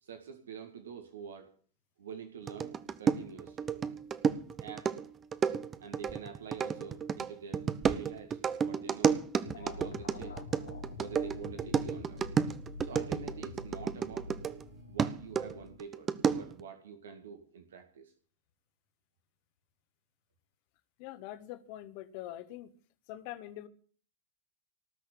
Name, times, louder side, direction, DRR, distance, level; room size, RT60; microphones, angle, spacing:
voice 1, 0.0-1.5 2.0-3.7 4.6-4.9 5.8-9.2 9.5-10.4 11.0-12.2 12.8-14.3 14.9-18.1, right 7 dB, 65° right, 7 dB, 2.1 m, -47 dB
sound 1, 2.5-14.6 15.0-16.6, right 7 dB, 25° right, 1.0 m, -32 dB
sound 2, 9.4-14.9, left 4 dB, 65° left, 1.7 m, -46 dB
sound 3, 10.6-15.8, left 1 dB, 90° right, 3.6 m, -53 dB
voice 2, 21.0-22.7 23.1-23.7, left 14 dB, 45° left, 12 dB, 1.5 m, -44 dB
19.0 x 6.4 x 9.0 m, 0.43 s
figure-of-eight pair, 90°, 0 cm